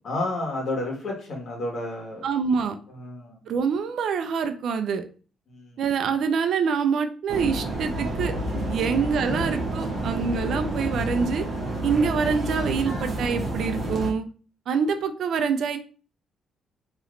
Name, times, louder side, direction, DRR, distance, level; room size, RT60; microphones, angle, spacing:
voice 1, 0.0-2.2 2.9-3.4 5.5-5.8 9.2-9.4, left 2 dB, 55° left, 0 dB, 1.4 m, -31 dB
voice 2, 2.2-2.8 3.5-5.0 5.8-8.3 8.7-11.4 11.8-14.2 14.7-15.8, right 6 dB, 70° right, 8 dB, 0.4 m, -25 dB
sound 1, 7.3-14.1, right 1 dB, 45° right, 1.0 m, -29 dB
3.1 x 2.9 x 2.5 m, 0.38 s
cardioid pair, 90°, 0 cm